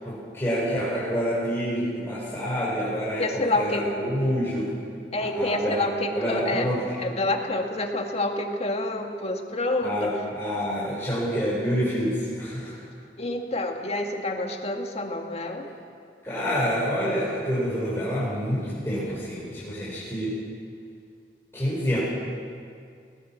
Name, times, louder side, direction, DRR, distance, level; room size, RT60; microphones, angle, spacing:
voice 1, 0.0-4.7 5.2-5.9 6.1-6.9 9.8-12.7 16.2-20.3 21.5-22.0, equal, 15° left, -10 dB, 5.4 m, -27 dB
voice 2, 3.2-3.8 5.1-6.7 7.0-10.1 13.2-15.7, left 2 dB, 35° left, 3 dB, 2.1 m, -28 dB
19.5 x 19.0 x 7.5 m, 2.3 s
head